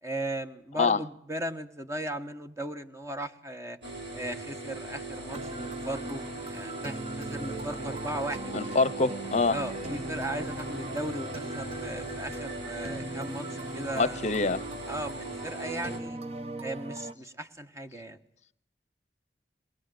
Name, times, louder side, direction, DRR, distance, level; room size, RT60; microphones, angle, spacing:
voice 1, 0.0-3.8 4.1-8.8 9.5-11.3 11.5-13.5 13.7-14.3 14.9-16.2 16.6-18.2, right 1 dB, 15° right, 1.3 m, -37 dB
sound 1, 3.8-16.0, right 2 dB, 75° right, 4.7 m, -40 dB
sound 2, 5.3-17.1, right 1 dB, 35° right, 1.0 m, -39 dB
voice 2, 8.5-9.6 14.0-14.6, left 3 dB, 40° left, 0.8 m, -25 dB
sound 3, 9.3-13.1, left 2 dB, 10° left, 0.8 m, -50 dB
21.5 x 20.0 x 7.8 m
head